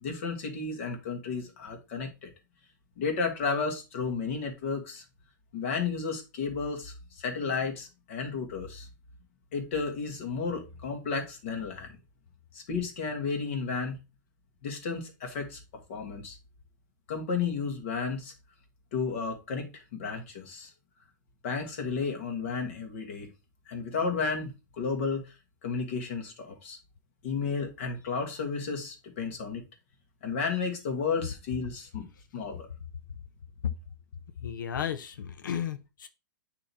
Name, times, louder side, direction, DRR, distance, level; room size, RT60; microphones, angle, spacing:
voice 1, 0.0-2.3 3.0-5.0 5.5-8.9 9.5-11.9 12.5-14.0 14.6-15.6 15.9-16.4 17.1-18.3 18.9-20.7 21.4-23.3 23.7-24.5 24.8-25.3 25.6-26.8 27.2-29.6 30.2-32.1 32.3-32.7, left 5 dB, 40° left, 1.5 m, -32 dB
voice 2, 34.4-36.1, left 9 dB, 90° left, 0.7 m, -34 dB
8.8 x 2.9 x 4.1 m
hypercardioid pair, 175°, 10 cm